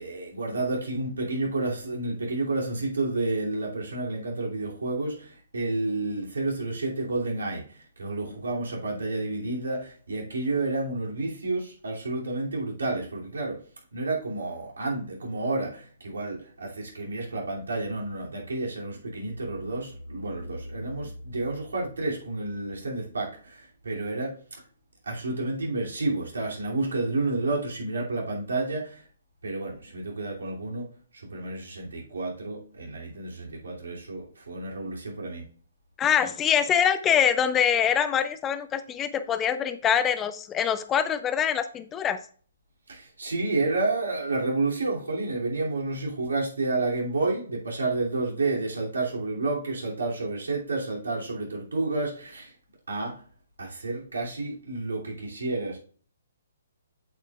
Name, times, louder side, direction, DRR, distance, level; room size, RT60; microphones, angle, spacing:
voice 1, 0.0-7.6 8.0-13.6 13.9-24.4 25.0-29.0 29.4-30.9 31.3-35.4 42.9-52.5 52.9-53.2 53.6-55.8, right 2 dB, 80° right, 2.7 m, -30 dB
voice 2, 36.0-42.2, left 8 dB, 15° left, 0.6 m, -24 dB
8.1 x 7.5 x 2.4 m
figure-of-eight pair, 135°, 0 cm